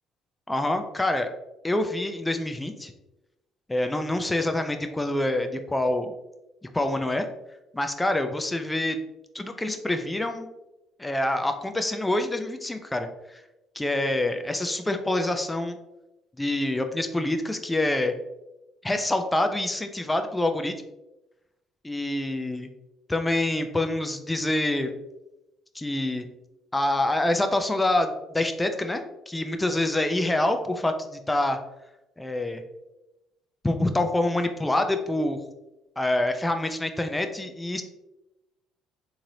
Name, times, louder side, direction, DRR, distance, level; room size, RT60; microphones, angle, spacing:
voice 1, 0.5-1.3 1.6-2.9 3.7-6.1 6.6-7.3 7.7-9.0 9.3-10.5 11.0-13.4 13.7-15.8 16.4-18.1 18.8-20.7 21.8-22.7 23.1-24.9 25.7-26.3 26.7-31.6 32.2-32.6 33.6-35.4 36.0-37.8, left 1 dB, 15° left, 6 dB, 0.4 m, -26 dB
3.7 x 3.1 x 2.7 m, 0.95 s
hypercardioid pair, 60°, 0 cm